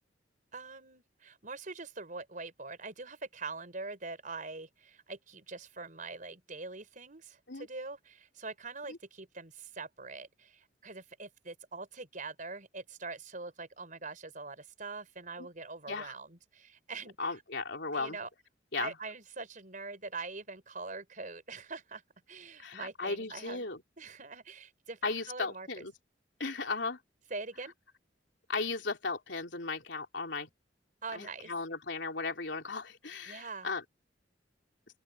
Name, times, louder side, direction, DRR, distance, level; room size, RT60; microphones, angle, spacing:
voice 1, 0.5-17.4 17.9-18.3 18.8-22.0 22.3-23.7 24.0-25.9 27.3-27.7 31.0-31.5 33.3-33.7, right 3 dB, 45° right, 5.0 m, -43 dB
voice 2, 17.2-18.2 18.7-18.9 22.6-23.8 25.0-25.9 26.4-27.0 28.5-30.5 31.1-33.8, left 4 dB, 75° left, 3.4 m, -36 dB
open air
head